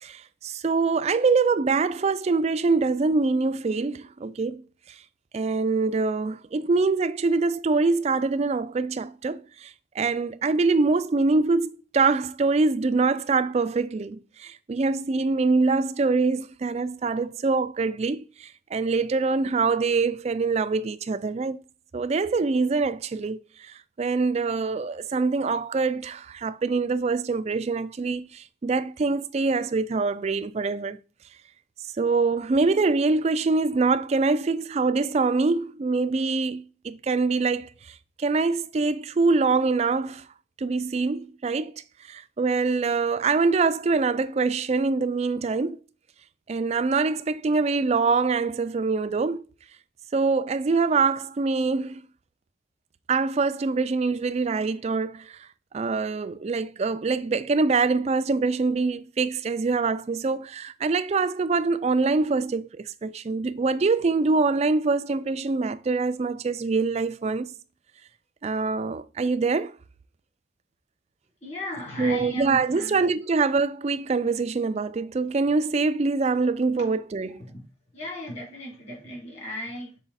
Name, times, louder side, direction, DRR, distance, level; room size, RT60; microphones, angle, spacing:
voice 1, 0.0-4.6 5.3-21.6 21.9-31.0 32.0-37.7 38.2-40.3 40.6-41.7 42.1-45.8 46.5-49.4 50.1-52.0 53.1-55.4 55.7-67.5 68.4-69.7 72.0-77.4, right 4 dB, 35° right, 0.3 m, -24 dB
voice 2, 71.4-73.0 77.5-77.6 77.9-80.0, equal, 30° left, 3.0 m, -35 dB
5.8 x 4.7 x 4.1 m
head